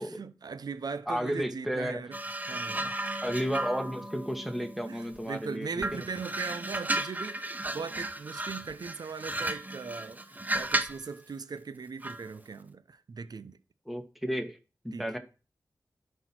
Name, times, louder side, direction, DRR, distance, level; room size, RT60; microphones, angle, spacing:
voice 1, 0.0-2.1 2.5-3.1 4.8-13.6 14.9-15.2, right 5 dB, 65° right, 0.8 m, -39 dB
voice 2, 1.1-2.0 3.2-6.0 13.9-14.6 14.8-15.2, equal, ahead, 1.8 m, -32 dB
sound 1, 2.1-5.3 5.8-11.1 12.0-12.3, right 1 dB, 25° right, 1.0 m, -34 dB
11.0 x 4.6 x 6.0 m
cardioid pair, 60°, 7 cm